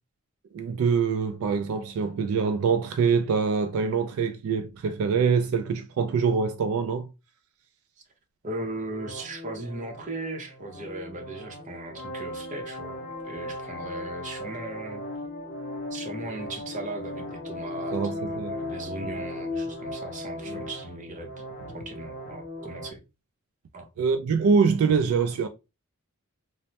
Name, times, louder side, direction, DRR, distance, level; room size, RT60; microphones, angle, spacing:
voice 1, 0.5-7.1 17.9-18.6 19.0-19.2 20.5-20.6 24.0-25.5, right 5 dB, 75° right, 0.3 m, -24 dB
voice 2, 8.4-15.0 15.9-21.3 21.7-23.0 23.7-23.9, right 2 dB, 35° right, 0.7 m, -38 dB
sound 1, 8.9-22.9, left 1 dB, 40° left, 0.6 m, -37 dB
3.1 x 2.0 x 2.7 m
head